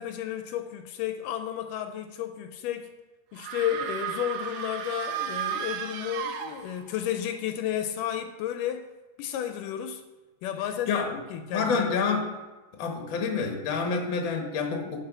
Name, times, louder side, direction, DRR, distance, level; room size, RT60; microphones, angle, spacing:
voice 1, 0.0-2.9 3.3-8.9 9.2-10.0 10.4-12.1 13.9-14.0, left 10 dB, 80° left, 8 dB, 2.0 m, -32 dB
sound 1, 3.4-7.0, right 8 dB, 80° right, 2.5 m, -34 dB
voice 2, 11.5-12.4 12.7-15.0, left 5 dB, 55° left, 2 dB, 1.4 m, -28 dB
11.0 x 4.8 x 6.0 m, 1.2 s
omnidirectional pair, 4.0 m